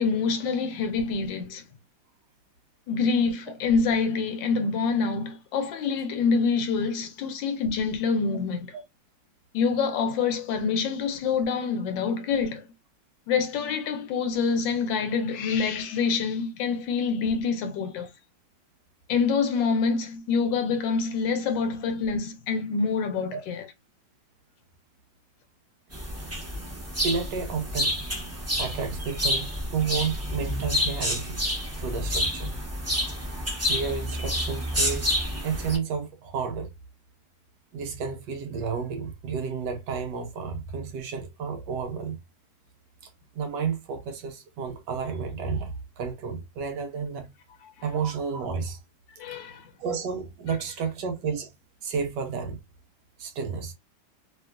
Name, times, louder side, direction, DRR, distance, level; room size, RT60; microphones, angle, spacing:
voice 1, 0.0-1.6 2.9-8.7 9.5-12.6 13.3-18.1 19.1-23.6 49.2-49.7, left 5 dB, 75° left, 1.3 m, -26 dB
sound 1, 25.9-35.8, left 1 dB, 15° right, 0.6 m, -29 dB
voice 2, 27.0-28.0 28.6-31.4 31.8-32.5 33.6-35.2 35.4-36.7 37.7-42.2 43.3-47.3 47.8-48.8 49.8-51.5 51.8-52.6 53.2-53.7, right 6 dB, 70° right, 1.2 m, -31 dB
2.9 x 2.7 x 2.4 m
omnidirectional pair, 2.1 m